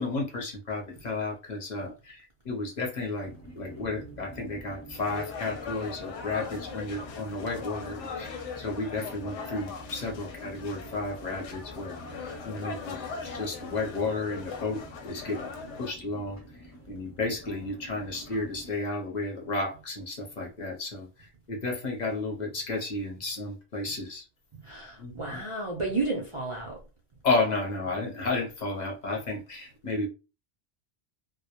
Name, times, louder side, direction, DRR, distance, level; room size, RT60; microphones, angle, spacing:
voice 1, 0.0-13.0 13.2-15.5 15.8-16.4 16.9-24.2 25.0-25.4 27.2-30.1, left 3 dB, 45° left, 0.7 m, -32 dB
sound 1, 3.2-18.7, right 1 dB, 15° left, 0.9 m, -47 dB
sound 2, 4.9-15.9, left 5 dB, 90° left, 0.9 m, -40 dB
voice 2, 24.5-26.8, right 3 dB, 55° right, 0.3 m, -32 dB
2.1 x 2.1 x 2.8 m
omnidirectional pair, 1.2 m